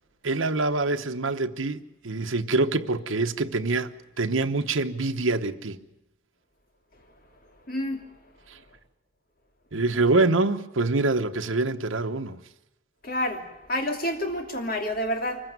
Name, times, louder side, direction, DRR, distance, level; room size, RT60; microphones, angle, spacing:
voice 1, 0.2-5.8 9.7-12.4, right 3 dB, 80° right, 1.1 m, -25 dB
voice 2, 7.7-8.0 13.0-13.4 13.7-15.4, left 1 dB, 45° left, 2.9 m, -28 dB
24.5 x 15.5 x 9.5 m
head